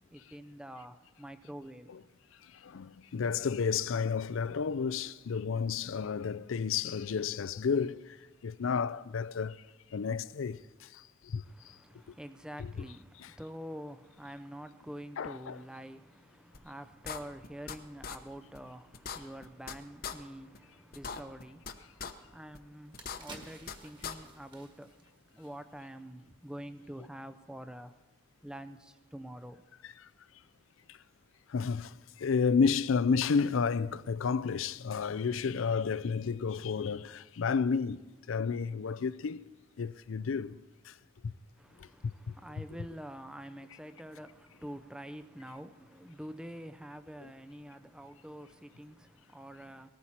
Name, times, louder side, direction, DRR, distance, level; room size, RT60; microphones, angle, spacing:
voice 1, 0.1-2.1 11.4-27.9 28.4-29.6 41.6-49.9, equal, 5° right, 0.5 m, -47 dB
voice 2, 2.6-8.2 8.4-9.6 9.9-11.4 12.6-12.7 13.2-13.3 15.2-15.6 31.5-38.0 38.3-39.4 39.8-40.5 40.9-41.0 41.2-41.3 41.8-42.3, left 5 dB, 70° left, 0.4 m, -31 dB
sound 1, 16.5-16.6 17.0-17.8 18.0-18.2 18.5-18.6 18.9-19.7 20.0-20.1 20.5-20.6 20.9-21.7 22.0-22.1 22.5-22.6 22.9-23.7 24.0-24.1, left 6 dB, 45° left, 0.9 m, -39 dB
sound 2, 22.7-26.0 26.3-26.5, right 2 dB, 25° right, 1.8 m, -53 dB
19.5 x 14.0 x 4.3 m
head